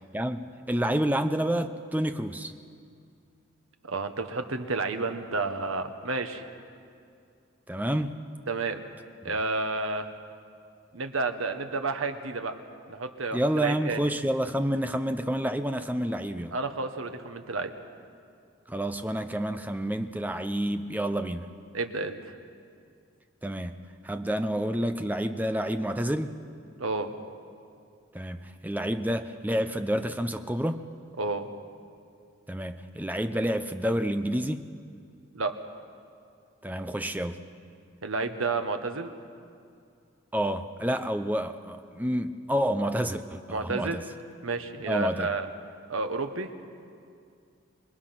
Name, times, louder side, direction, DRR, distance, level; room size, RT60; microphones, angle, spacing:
voice 1, 0.1-2.5 7.7-8.2 9.2-9.4 13.3-16.6 18.7-21.5 23.4-23.8 24.0-26.3 28.1-30.8 32.5-34.6 36.6-37.5 40.3-44.0 44.9-45.3, equal, 10° right, 8 dB, 0.7 m, -29 dB
voice 2, 3.8-6.4 8.5-8.8 9.2-10.1 10.9-12.5 12.9-14.0 16.5-17.7 21.7-22.2 26.8-27.1 31.2-31.5 35.3-35.5 38.0-39.1 43.5-44.0 44.4-45.5 45.9-46.5, right 3 dB, 85° right, 7 dB, 1.4 m, -30 dB
26.5 x 21.0 x 6.0 m, 2.4 s
head